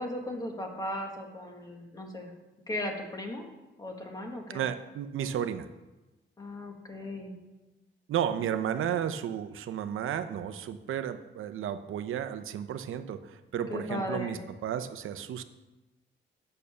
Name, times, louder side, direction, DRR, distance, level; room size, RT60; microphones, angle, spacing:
voice 1, 0.0-2.3 2.7-3.4 3.8-4.6 6.4-7.4 13.7-14.4, left 1 dB, 20° left, 2 dB, 1.5 m, -37 dB
voice 2, 4.5-5.7 8.1-15.4, right 9 dB, 85° right, 10 dB, 0.7 m, -33 dB
8.7 x 6.8 x 6.9 m, 1.1 s
wide cardioid pair, 165°, 20 cm